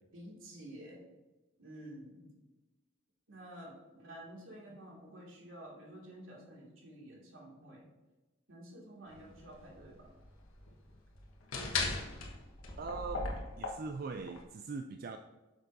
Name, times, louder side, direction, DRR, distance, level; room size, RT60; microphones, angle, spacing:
voice 1, 0.1-1.0 1.6-2.3 3.3-7.9 8.5-10.1, right 1 dB, 75° right, -3 dB, 2.3 m, -51 dB
sound 1, 9.1-14.4, left 3 dB, 90° left, 1.3 m, -39 dB
voice 2, 12.8-13.3 13.6-15.2, right 4 dB, 45° right, 6 dB, 0.3 m, -41 dB
8.3 x 6.5 x 2.7 m, 1.1 s
head